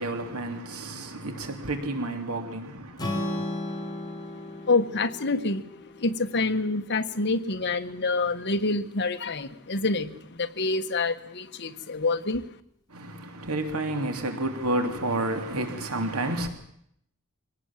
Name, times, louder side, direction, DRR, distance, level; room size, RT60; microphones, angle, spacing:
voice 1, 0.0-3.4 12.9-16.5, right 2 dB, 85° right, 3.0 m, -30 dB
Strum, 3.0-7.2, left 1 dB, 20° left, 4.9 m, -35 dB
voice 2, 4.7-12.5, left 3 dB, 50° left, 1.5 m, -27 dB
25.0 x 18.5 x 7.5 m
head